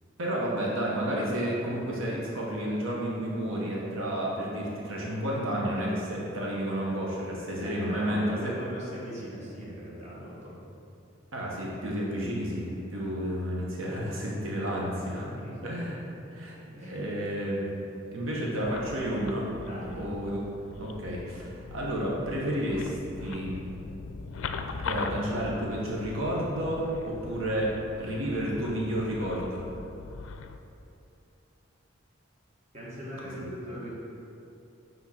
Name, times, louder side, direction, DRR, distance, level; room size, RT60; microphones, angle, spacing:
voice 1, 0.2-8.5 11.3-15.2 15.6-16.0 16.3-16.5 16.9-17.7 18.1-19.5 19.9-20.4 20.8-23.6 24.8-27.7 28.0-29.6 33.4-33.5, equal, 80° right, -4 dB, 1.0 m, -31 dB
voice 2, 7.6-10.6 12.9-13.1 14.7-15.8 16.8-17.0 19.7-20.0 32.7-34.0, equal, 35° right, -7 dB, 1.4 m, -40 dB
sound 1, 18.6-30.6, left 4 dB, 80° left, 0.4 m, -40 dB
6.0 x 3.6 x 5.8 m, 2.7 s
head